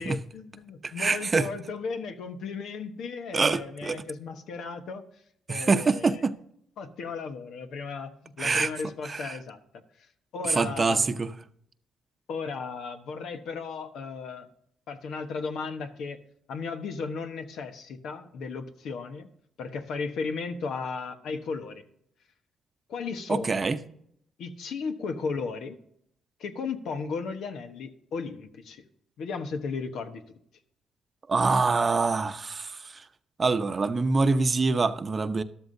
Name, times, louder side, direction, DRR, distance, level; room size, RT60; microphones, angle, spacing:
voice 1, 0.0-5.0 5.5-6.2 6.8-9.6 10.3-11.1 12.3-14.5 14.9-16.2 16.5-19.3 19.6-21.8 22.9-23.7 24.4-25.8 26.4-28.8 29.2-30.2, left 4 dB, 75° left, 1.2 m, -35 dB
voice 2, 0.8-1.5 3.3-4.0 5.5-6.3 8.4-8.7 9.0-9.4 10.5-11.3 23.3-23.8 31.3-33.0 33.4-35.4, right 4 dB, 35° right, 0.8 m, -25 dB
13.0 x 12.5 x 2.8 m
cardioid pair, 90°, 0 cm